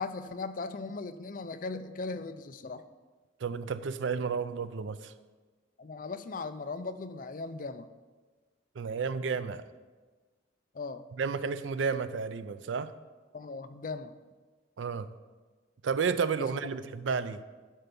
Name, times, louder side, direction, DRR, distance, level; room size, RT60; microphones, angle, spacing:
voice 1, 0.0-2.8 5.8-7.9 10.7-11.0 13.3-14.1, left 3 dB, 45° left, 11 dB, 0.5 m, -38 dB
voice 2, 3.4-5.1 8.8-9.6 11.2-12.9 14.8-15.1 15.8-17.4, right 5 dB, 80° right, 13 dB, 0.4 m, -31 dB
12.0 x 4.5 x 5.3 m, 1.3 s
head